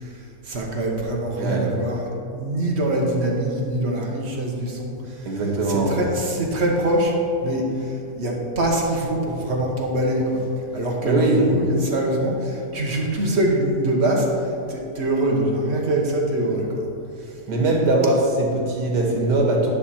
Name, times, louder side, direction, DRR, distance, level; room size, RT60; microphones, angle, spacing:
voice 1, 0.4-5.3 5.7-7.1 7.4-10.4 10.7-14.3 14.7-16.9, right 1 dB, 45° right, -1 dB, 1.3 m, -24 dB
voice 2, 5.2-6.0 11.0-11.4 17.5-19.7, right 2 dB, 85° right, -1 dB, 2.0 m, -21 dB
10.0 x 6.1 x 4.3 m, 2.7 s
omnidirectional pair, 1.7 m